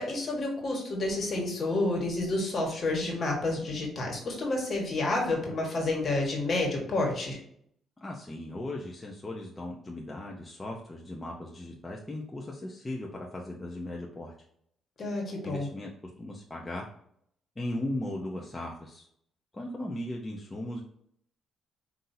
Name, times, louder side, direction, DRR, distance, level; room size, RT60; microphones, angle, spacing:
voice 1, 0.0-7.4 15.0-15.7, left 2 dB, 45° left, 0 dB, 1.4 m, -29 dB
voice 2, 8.0-14.3 15.4-16.9 17.6-19.1 19.5-20.8, left 1 dB, 20° left, -2 dB, 0.7 m, -37 dB
5.6 x 2.7 x 2.7 m, 0.69 s
cardioid pair, 90°, 0 cm